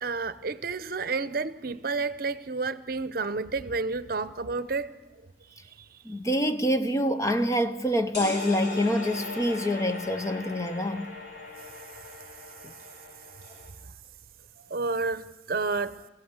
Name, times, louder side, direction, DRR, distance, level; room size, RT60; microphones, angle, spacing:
voice 1, 0.0-5.0 14.7-16.0, right 4 dB, 55° right, 0.8 m, -30 dB
voice 2, 6.0-11.1 12.6-12.7, equal, 15° left, 0.8 m, -26 dB
sound 1, 8.1-13.7, left 2 dB, 55° left, 7.5 m, -39 dB
23.0 x 16.0 x 8.2 m
head